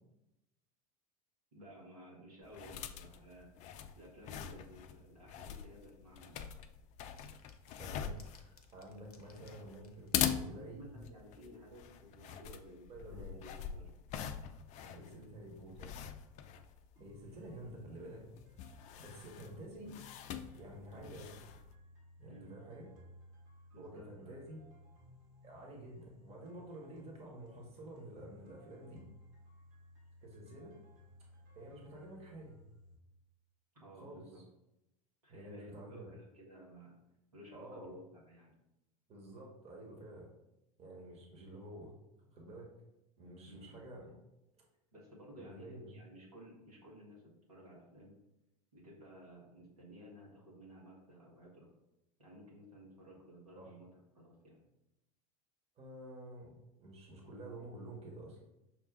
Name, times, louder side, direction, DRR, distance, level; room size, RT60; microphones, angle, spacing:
voice 1, 1.5-3.5 3.9-6.5 10.5-13.9 14.8-15.2 22.3-22.5 23.7-24.4 33.7-34.4 35.2-37.0 37.3-38.5 43.4-43.7 44.9-48.2 48.7-51.7 52.2-54.6, equal, 85° right, -4 dB, 1.5 m, -55 dB
sound 1, 2.4-21.8, left 9 dB, 40° left, 0.4 m, -43 dB
sound 2, 7.2-10.2, left 4 dB, 85° left, 0.6 m, -64 dB
voice 2, 7.8-10.9 12.9-13.4 15.0-16.0 17.0-18.3 18.5-20.0 20.6-21.4 22.2-22.9 23.8-24.6 25.4-29.0 30.2-30.7 31.5-32.6 34.0-34.4 35.3-36.1 37.5-37.9 39.1-40.3 40.8-41.9 42.3-42.7 43.2-44.2 44.6-44.7 45.3-45.9 53.6-53.7 55.8-58.4, right 1 dB, 35° right, 0 dB, 1.2 m, -50 dB
sound 3, 17.0-33.0, left 2 dB, 65° right, 1.6 m, -59 dB
6.0 x 2.4 x 3.7 m, 0.90 s
figure-of-eight pair, 80°, 19 cm